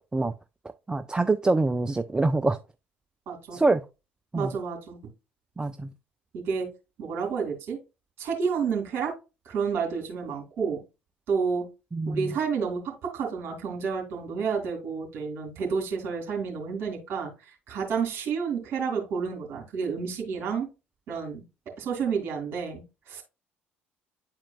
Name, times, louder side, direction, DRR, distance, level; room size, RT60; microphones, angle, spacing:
voice 1, 0.9-2.6 3.5-3.9 4.3-4.6 5.6-5.9 11.9-12.4, right 3 dB, 15° right, 0.4 m, -25 dB
voice 2, 3.3-3.6 4.3-5.0 6.3-6.7 7.0-7.8 8.2-9.1 9.4-10.8 11.3-11.6 12.1-17.3 17.7-20.7 21.1-21.4 21.8-22.8 23.1-23.2, right 6 dB, 45° right, 2.9 m, -30 dB
9.9 x 4.4 x 2.4 m
figure-of-eight pair, 55°, 6 cm